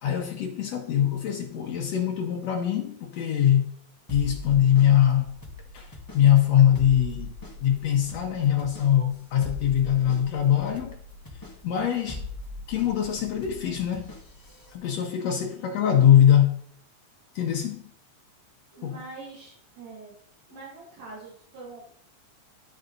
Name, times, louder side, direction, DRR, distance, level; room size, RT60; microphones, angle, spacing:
voice 1, 0.0-3.7 4.1-5.4 5.7-7.3 7.6-11.0 11.6-12.3 12.7-14.1 14.7-16.6 17.4-17.8 18.8-18.9, left 10 dB, 70° left, 1.8 m, -22 dB
sound 1, 4.1-14.8, left 2 dB, 20° left, 0.5 m, -41 dB
voice 2, 18.7-20.1 20.5-21.9, right 3 dB, 90° right, 3.8 m, -44 dB
12.0 x 4.7 x 3.9 m
omnidirectional pair, 3.4 m